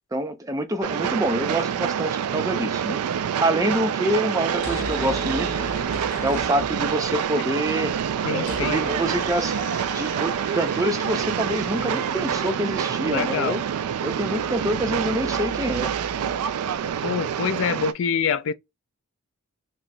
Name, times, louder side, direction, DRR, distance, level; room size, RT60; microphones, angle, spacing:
voice 1, 0.1-3.0 3.4-5.5 6.2-7.9 8.3-9.5 9.9-13.6 14.0-15.9, right 1 dB, 15° right, 0.5 m, -26 dB
Train, 0.8-17.9, right 8 dB, 90° right, 0.3 m, -27 dB
sound 1, 4.5-7.2 7.5-7.6 7.7-17.2, left 2 dB, 80° left, 1.7 m, -39 dB
voice 2, 8.2-8.8 13.0-13.6 17.0-18.5, left 6 dB, 60° left, 0.3 m, -26 dB
3.9 x 2.9 x 2.2 m
head